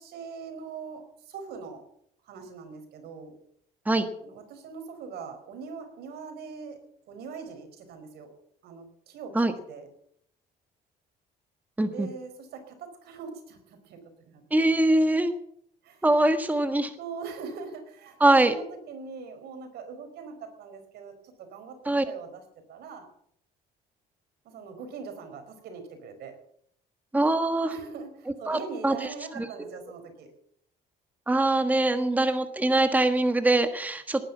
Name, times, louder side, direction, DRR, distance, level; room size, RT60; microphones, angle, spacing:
voice 1, 0.0-1.9 2.2-3.4 4.2-6.8 7.1-8.4 8.6-9.9 11.9-14.4 15.8-16.0 17.0-21.8 22.0-23.1 24.4-26.4 27.6-30.3, right 5 dB, 75° right, 7 dB, 4.6 m, -42 dB
voice 2, 14.5-15.3 16.0-16.9 18.2-18.5 21.8-22.0 27.1-27.7 28.5-28.9 29.4-29.5 31.3-34.2, right 2 dB, 10° right, 8 dB, 1.4 m, -23 dB
19.0 x 10.5 x 7.1 m, 0.69 s
cardioid pair, 110°, 17 cm